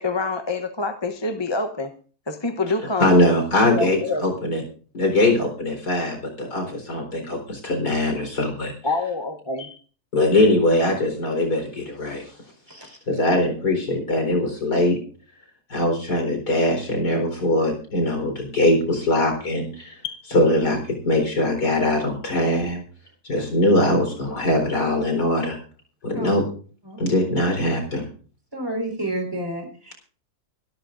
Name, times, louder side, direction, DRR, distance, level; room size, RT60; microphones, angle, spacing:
voice 1, 0.0-1.9 2.3-3.2 3.6-4.3 8.8-9.8 20.0-20.2, left 3 dB, 20° left, 0.8 m, -26 dB
voice 2, 3.0-4.6 4.9-8.7 10.1-12.2 13.1-15.0 15.7-19.9 20.3-22.8 23.3-25.6 26.0-26.4 27.0-28.1, left 1 dB, 85° left, 4.8 m, -21 dB
voice 3, 28.5-29.9, right 1 dB, 15° right, 4.6 m, -30 dB
26.0 x 12.5 x 2.6 m
omnidirectional pair, 1.6 m